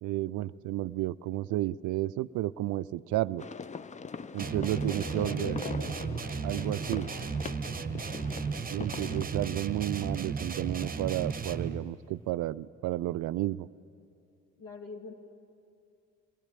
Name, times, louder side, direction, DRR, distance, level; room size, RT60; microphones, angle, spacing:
voice 1, 0.0-3.4 4.3-5.6 6.4-7.1 8.7-13.7, right 15 dB, 50° right, 16 dB, 0.5 m, -32 dB
sound 1, 3.4-9.2, left 5 dB, 20° left, 0.5 m, -42 dB
voice 2, 4.3-6.1 8.6-9.2 14.6-15.1, left 3 dB, 55° left, 4 dB, 2.4 m, -43 dB
sound 2, 4.4-11.9, right 5 dB, 20° right, 1.1 m, -34 dB
22.0 x 19.0 x 8.3 m, 2.5 s
hypercardioid pair, 50°, 39 cm